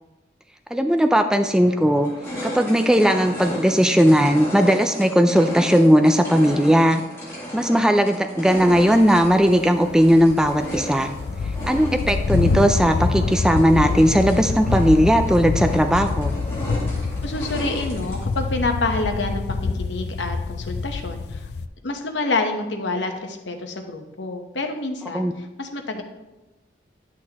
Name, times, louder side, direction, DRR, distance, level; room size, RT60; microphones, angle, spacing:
voice 1, 0.7-2.1 2.4-7.0 7.5-11.1 11.6-16.3 25.1-25.3, equal, 5° right, 6 dB, 0.3 m, -17 dB
sound 1, 1.0-1.1 1.6-18.4, equal, 15° left, 2.2 m, -34 dB
sound 2, 8.6-21.7, left 4 dB, 70° left, 0.4 m, -26 dB
voice 2, 17.2-21.5 21.8-26.0, left 2 dB, 90° left, 5 dB, 1.0 m, -28 dB
10.5 x 6.3 x 2.9 m, 1.1 s
head